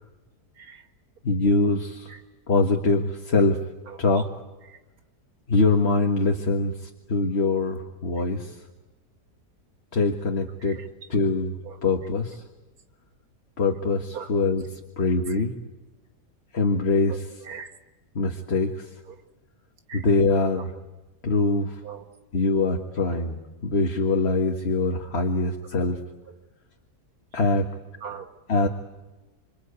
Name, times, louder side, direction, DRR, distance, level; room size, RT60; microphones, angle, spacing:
voice 1, 0.6-0.9 2.1-2.2 3.4-3.5 3.9-4.2 4.6-4.8 10.6-10.9 11.6-11.8 14.1-14.3 15.3-15.4 17.1-17.7 19.1-19.2 19.9-20.1 21.8-22.1 24.2-24.3 26.3-26.4 28.0-28.3, right 7 dB, 65° right, 6 dB, 2.2 m, -41 dB
voice 2, 1.2-2.1 2.5-3.6 4.0-4.3 5.5-8.6 9.9-10.8 11.1-11.5 11.8-12.4 13.6-14.6 15.0-15.5 16.5-17.2 18.2-18.9 19.9-20.7 21.2-21.8 22.3-26.0 27.3-27.7 28.5-28.7, left 3 dB, 40° left, 3 dB, 1.8 m, -23 dB
27.0 x 26.5 x 8.3 m, 1.1 s
omnidirectional pair, 1.7 m